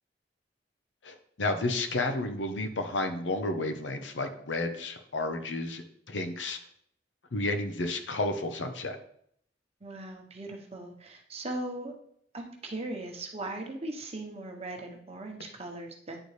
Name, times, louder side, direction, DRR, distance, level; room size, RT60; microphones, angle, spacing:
voice 1, 1.0-6.6 7.3-9.0, left 2 dB, 90° left, 7 dB, 0.8 m, -31 dB
voice 2, 9.8-11.9 12.3-16.2, right 2 dB, 35° right, 2 dB, 1.0 m, -39 dB
9.8 x 4.1 x 3.3 m, 0.67 s
head